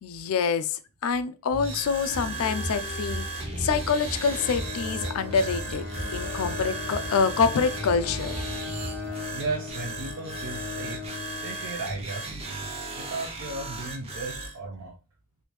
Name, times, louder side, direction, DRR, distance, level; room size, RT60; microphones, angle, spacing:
voice 1, 0.0-5.9 6.1-8.4, left 5 dB, 75° left, 0.4 m, -26 dB
sound 1, 1.5-14.6, right 2 dB, 25° right, 0.6 m, -37 dB
sound 2, 2.1-9.1, right 1 dB, 45° right, 1.0 m, -36 dB
Bowed string instrument, 4.2-12.4, left 4 dB, 90° left, 0.8 m, -38 dB
voice 2, 9.0-11.0 11.4-14.9, right 3 dB, 80° right, 0.6 m, -36 dB
3.4 x 2.6 x 3.0 m
head